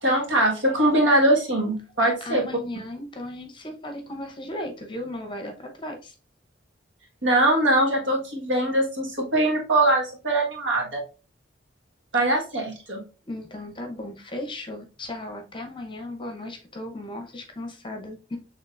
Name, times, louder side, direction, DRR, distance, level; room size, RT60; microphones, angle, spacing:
voice 1, 0.0-2.4 7.2-11.0 12.1-13.0, right 1 dB, 80° right, 0 dB, 1.5 m, -22 dB
voice 2, 2.0-6.1 13.2-18.4, left 1 dB, 25° left, 4 dB, 0.9 m, -36 dB
6.4 x 3.3 x 2.5 m, 0.33 s
head